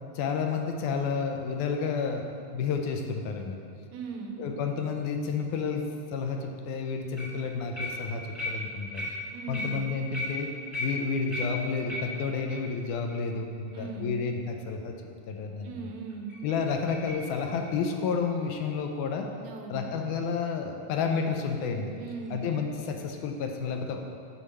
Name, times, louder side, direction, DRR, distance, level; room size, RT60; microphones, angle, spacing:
voice 1, 0.2-2.3 2.5-3.6 4.4-9.1 9.5-10.5 10.8-14.9 15.3-15.9 16.4-19.3 19.7-21.9 22.3-24.2, left 5 dB, 85° left, 4 dB, 2.2 m, -31 dB
voice 2, 3.9-4.5 9.3-9.8 13.7-14.2 15.6-16.4 19.4-19.9 22.0-22.5, right 5 dB, 75° right, 2 dB, 1.9 m, -39 dB
sound 1, 7.2-7.4 7.7-12.7 13.1-13.2 13.7-13.8 14.3-14.4 16.1-18.9 21.7-23.2, left 1 dB, 15° left, 1.0 m, -37 dB
8.7 x 4.8 x 5.5 m, 2.4 s
omnidirectional pair, 3.4 m